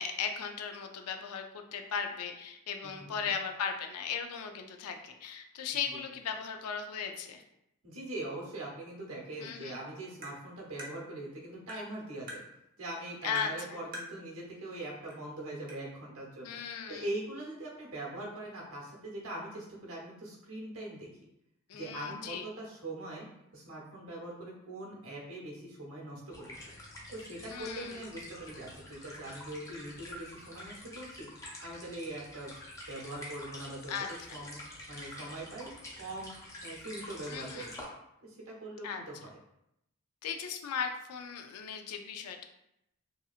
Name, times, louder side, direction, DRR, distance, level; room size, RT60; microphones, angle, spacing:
voice 1, 0.0-7.4 9.4-9.8 13.2-13.8 16.4-17.1 21.7-22.5 27.5-28.0 33.9-34.4 37.3-37.7 38.8-39.0 40.2-42.4, left 6 dB, 90° left, 5 dB, 0.4 m, -37 dB
voice 2, 2.8-3.3 5.9-6.0 7.8-12.4 12.8-16.6 16.9-21.1 21.7-23.3 23.5-26.5 27.1-31.3 31.6-32.5 32.9-33.9 34.3-34.6 34.9-36.3 36.6-37.7 38.2-39.4, right 1 dB, 70° right, -2 dB, 0.8 m, -42 dB
Tap, 10.2-10.4 10.8-10.9 11.7-11.8 12.3-12.4 13.4-13.5 13.9-14.1 15.1-15.2 15.7-15.8, equal, 40° right, 0.6 m, -42 dB
sound 1, 26.3-37.8, left 1 dB, 15° left, 0.4 m, -47 dB
2.7 x 2.7 x 2.4 m, 0.82 s
head